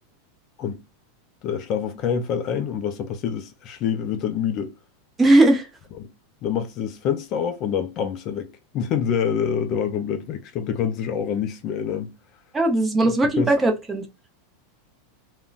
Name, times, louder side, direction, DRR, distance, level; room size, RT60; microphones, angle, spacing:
voice 1, 1.4-4.7 6.0-6.1 6.4-12.1 13.0-13.5, left 7 dB, 35° left, 0.3 m, -26 dB
voice 2, 5.2-5.7 12.5-14.0, right 2 dB, 10° right, 0.6 m, -18 dB
3.6 x 2.0 x 2.3 m
supercardioid pair, 160°, 0 cm